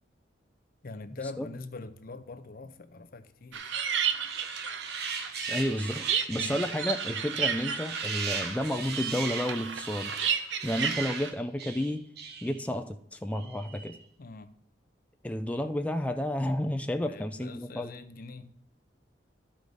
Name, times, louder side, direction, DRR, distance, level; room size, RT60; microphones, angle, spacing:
voice 1, 0.8-3.7 6.3-6.6 14.2-14.5 17.0-18.5, left 3 dB, 50° left, 12 dB, 0.6 m, -43 dB
sound 1, 3.5-11.3, right 7 dB, 80° right, 0.8 m, -33 dB
sound 2, 4.2-12.7 13.3-14.0, right 5 dB, 60° right, 1.3 m, -38 dB
voice 2, 5.5-10.1 10.6-12.0 12.4-14.0 15.2-17.9, left 1 dB, 10° left, 6 dB, 0.3 m, -31 dB
13.5 x 4.9 x 4.0 m, 0.67 s
head